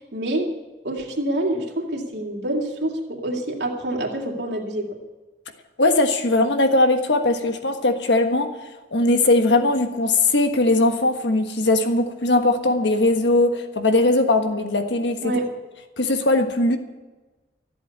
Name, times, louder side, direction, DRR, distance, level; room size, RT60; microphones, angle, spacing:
voice 1, 0.1-0.5 0.8-4.9 15.2-15.5, right 1 dB, 75° right, -1 dB, 2.5 m, -26 dB
voice 2, 5.8-8.5 8.9-15.3 16.0-16.8, left 2 dB, 85° left, 6 dB, 1.4 m, -19 dB
14.0 x 8.0 x 9.7 m, 1.2 s
head